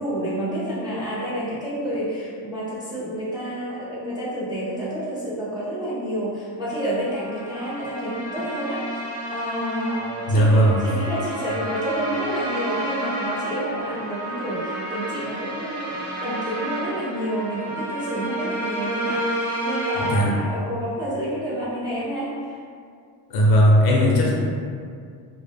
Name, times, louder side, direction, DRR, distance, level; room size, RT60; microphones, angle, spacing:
voice 1, 0.0-8.8 9.3-22.6, equal, 10° right, -11 dB, 0.4 m, -29 dB
sound 1, 6.8-20.1, right 1 dB, 30° right, 1.0 m, -30 dB
voice 2, 10.3-10.8 19.9-20.3 23.3-24.4, equal, 50° left, -2 dB, 0.5 m, -17 dB
2.1 x 2.0 x 3.3 m, 2.2 s
cardioid pair, 130°, 48 cm